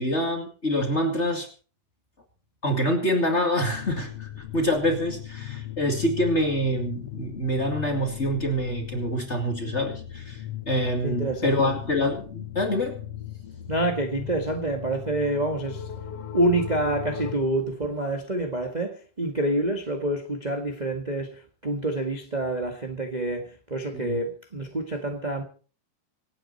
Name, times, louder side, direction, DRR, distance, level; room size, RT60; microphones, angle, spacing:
voice 1, 0.0-1.5 2.6-10.4 10.7-13.0 23.9-24.2, equal, 25° left, 2.2 m, -26 dB
sound 1, 3.6-17.4, left 10 dB, 60° left, 1.6 m, -38 dB
voice 2, 11.0-11.7 13.7-15.9 16.3-25.4, right 1 dB, 20° right, 1.1 m, -27 dB
26.0 x 9.2 x 4.3 m
omnidirectional pair, 3.9 m